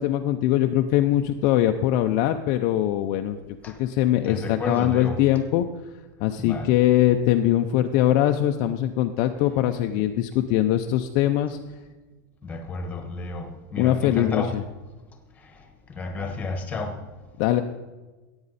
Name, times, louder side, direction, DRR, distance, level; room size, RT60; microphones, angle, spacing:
voice 1, 0.0-3.4 3.8-5.7 6.2-11.6 13.8-14.6 17.4-17.6, left 12 dB, 40° left, 0.5 m, -22 dB
voice 2, 4.2-5.2 6.4-6.7 10.0-10.1 12.4-14.6 15.4-17.1, left 3 dB, 15° left, 1.4 m, -32 dB
15.5 x 8.8 x 4.2 m
supercardioid pair, 160°, 11 cm